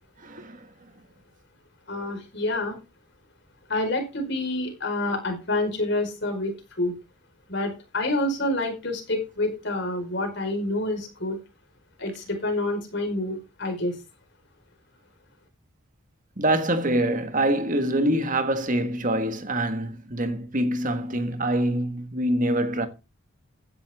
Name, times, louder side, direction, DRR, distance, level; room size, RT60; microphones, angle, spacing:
voice 1, 0.2-0.6 16.4-22.9, right 1 dB, 40° right, 1.7 m, -25 dB
voice 2, 1.9-2.8 3.7-6.9 7.5-11.4 12.0-14.0, left 2 dB, 55° left, 4.8 m, -28 dB
15.5 x 10.5 x 3.6 m
head